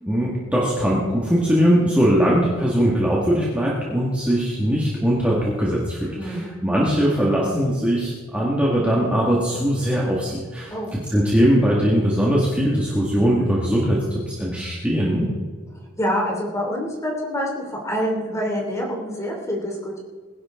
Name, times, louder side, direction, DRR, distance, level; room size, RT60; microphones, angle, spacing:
voice 1, 0.0-10.7 11.1-15.3, equal, 5° right, -5 dB, 1.9 m, -20 dB
voice 2, 6.2-6.6 10.7-11.0 16.0-20.0, equal, 15° left, -1 dB, 3.1 m, -26 dB
20.5 x 11.5 x 3.8 m, 1.5 s
head